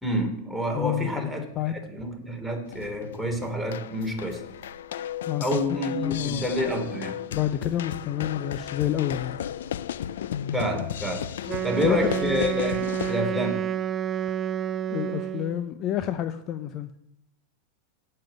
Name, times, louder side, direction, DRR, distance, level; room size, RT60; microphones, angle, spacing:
voice 1, 0.0-1.4 1.9-4.5 5.4-7.2 10.5-13.7, equal, ahead, 3.1 m, -28 dB
voice 2, 0.7-1.8 5.3-5.6 5.9-6.6 7.3-9.4 11.6-12.3 14.9-16.9, left 11 dB, 40° left, 0.7 m, -29 dB
sound 1, 2.7-13.2, left 10 dB, 75° left, 0.5 m, -35 dB
sound 2, 2.7-3.0 3.9-6.9 8.1-10.4 11.7-12.8, left 3 dB, 25° left, 3.9 m, -50 dB
Wind instrument woodwind instrument, 11.5-15.6, right 9 dB, 30° right, 0.5 m, -29 dB
8.8 x 7.9 x 9.2 m
hypercardioid pair, 105°, 0 cm